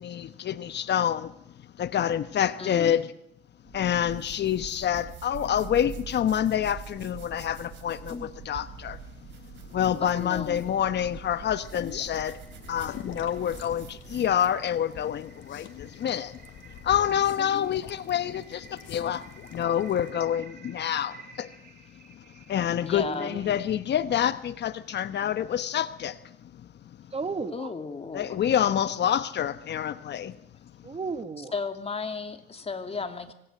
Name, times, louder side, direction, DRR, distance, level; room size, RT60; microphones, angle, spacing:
voice 1, 0.0-1.3 1.8-3.1 3.7-9.0 9.7-12.4 12.7-16.3 16.8-19.2 19.5-21.5 22.5-26.1 28.1-30.3, left 10 dB, 65° left, 13 dB, 1.1 m, -27 dB
voice 2, 2.6-3.0 8.1-8.3 10.0-10.6 22.8-23.4 27.5-28.4 31.5-33.3, left 4 dB, 30° left, 7 dB, 2.7 m, -34 dB
sound 1, 3.7-14.6, right 9 dB, 80° right, 3.8 m, -45 dB
voice 3, 9.7-10.0 23.0-23.5 27.1-27.7 30.8-31.5, right 4 dB, 30° right, 12 dB, 1.6 m, -35 dB
sound 2, 10.7-23.8, right 5 dB, 55° right, 6.4 m, -54 dB
sound 3, 11.6-20.1, left 9 dB, 80° left, 2.9 m, -45 dB
25.0 x 19.0 x 9.2 m, 0.78 s
cardioid pair, 105°, 19 cm